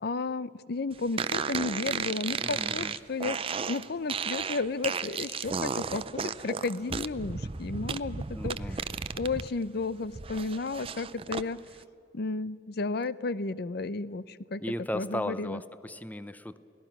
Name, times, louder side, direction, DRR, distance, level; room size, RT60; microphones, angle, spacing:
voice 1, 0.0-8.6 9.1-11.6 12.1-14.6 14.9-15.6, left 3 dB, 60° left, 17 dB, 0.6 m, -33 dB
sound 1, 1.2-9.5 9.8-11.5, right 5 dB, 30° right, 0.5 m, -34 dB
voice 2, 2.4-2.9 8.3-8.8 14.6-16.6, left 1 dB, 10° left, 13 dB, 0.7 m, -36 dB
29.0 x 18.0 x 6.0 m, 2.7 s
head